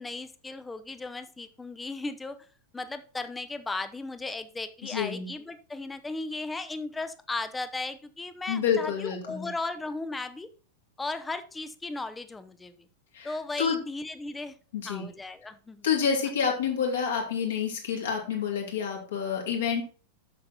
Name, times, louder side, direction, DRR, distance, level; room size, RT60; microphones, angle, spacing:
voice 1, 0.0-2.4 2.7-10.5 11.0-12.7 13.2-14.6 14.9-15.9, left 3 dB, 10° left, 12 dB, 0.8 m, -36 dB
voice 2, 4.8-5.3 8.5-9.5 13.1-13.8 14.7-15.1 15.8-19.8, left 7 dB, 60° left, 0 dB, 2.8 m, -28 dB
7.6 x 6.7 x 4.3 m, 0.38 s
figure-of-eight pair, 90°, 0 cm